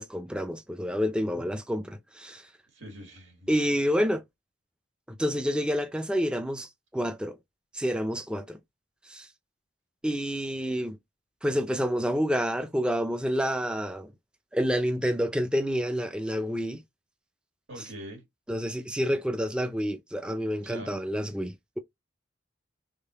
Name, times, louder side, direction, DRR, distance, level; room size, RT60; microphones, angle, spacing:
voice 1, 0.0-2.4 3.5-4.2 5.2-7.4 7.7-8.6 9.1-9.3 10.0-11.0 11.4-14.1 14.5-16.8 18.5-21.8, equal, 5° right, 0.4 m, -28 dB
voice 2, 2.7-3.5 17.7-18.2 20.6-21.0, right 1 dB, 85° right, 2.2 m, -43 dB
3.6 x 3.6 x 2.7 m
head